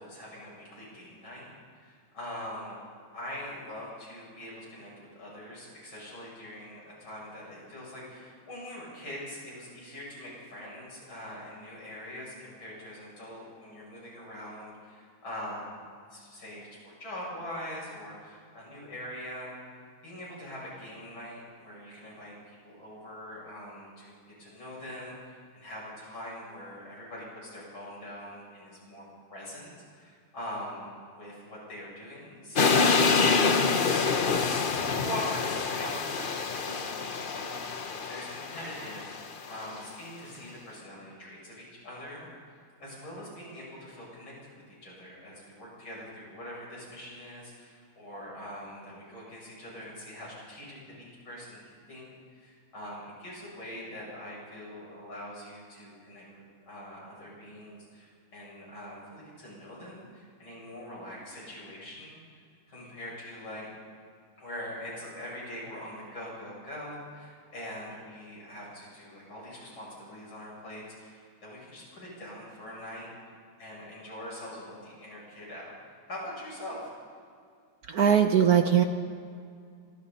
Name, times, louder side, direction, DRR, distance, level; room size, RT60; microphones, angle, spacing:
voice 1, 0.0-2.8 3.1-15.8 16.1-19.5 20.0-29.0 29.3-30.9 31.2-42.3 42.8-44.3 44.7-52.1 52.4-56.3 56.7-62.2 62.7-63.7 64.4-73.1 73.6-75.7 76.1-76.9, equal, 75° left, -5 dB, 8.7 m, -43 dB
sound 1, 32.6-39.7, left 4 dB, 45° left, 0.6 m, -26 dB
voice 2, 77.9-78.8, right 8 dB, 60° right, 7 dB, 1.1 m, -21 dB
26.5 x 24.5 x 4.3 m, 2.3 s
omnidirectional pair, 2.3 m